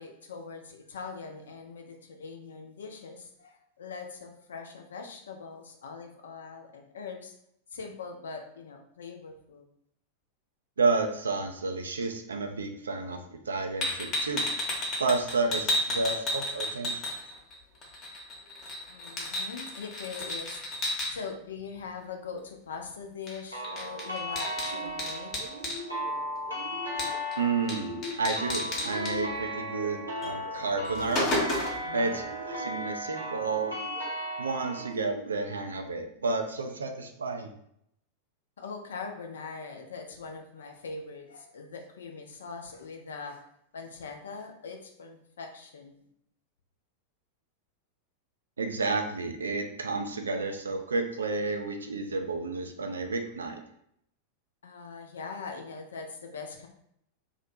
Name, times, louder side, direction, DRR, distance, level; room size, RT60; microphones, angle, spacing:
voice 1, 0.0-7.3 7.7-9.7 18.9-20.8 21.1-25.3 31.8-32.2 38.6-43.5 43.7-46.0 54.6-56.7, left 5 dB, 65° left, 4 dB, 0.4 m, -42 dB
voice 2, 10.8-13.2 13.5-14.4 15.0-17.0 27.4-31.3 31.9-33.8 34.4-37.5 48.6-53.6, right 3 dB, 70° right, 5 dB, 0.3 m, -31 dB
sound 1, 13.8-17.5 17.8-21.1 23.3-23.4 23.6-25.8 27.0-27.4 27.7-27.8 28.0-29.1 30.2-30.3 30.7-31.9, left 1 dB, 30° left, 0.7 m, -32 dB
sound 2, 23.5-34.9, equal, 90° right, 0.7 m, -36 dB
sound 3, 23.6-24.0 24.4-25.1 25.4-26.1 26.5-27.2 27.6-28.3 28.7-29.5 29.8-30.5 30.9-31.7 32.1-32.9 33.4-34.1 34.7-35.5, right 1 dB, 50° right, 0.7 m, -43 dB
2.4 x 2.1 x 2.6 m, 0.73 s
figure-of-eight pair, 90°, 0 cm